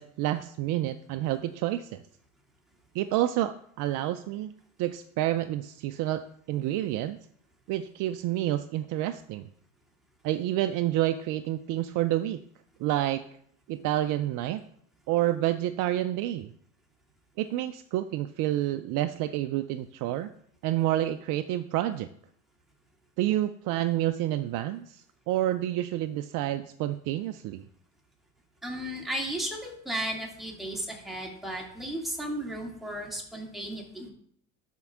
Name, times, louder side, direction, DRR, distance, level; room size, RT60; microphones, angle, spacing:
voice 1, 0.0-2.0 2.9-4.5 4.8-7.2 7.7-9.5 10.2-12.4 12.8-13.2 13.7-14.6 15.1-16.5 17.4-20.3 20.6-22.1 23.2-27.6, right 14 dB, 45° right, 9 dB, 0.5 m, -29 dB
voice 2, 28.6-34.1, right 1 dB, ahead, -2 dB, 2.3 m, -34 dB
12.0 x 4.5 x 3.6 m, 0.66 s
hypercardioid pair, 100°, 45 cm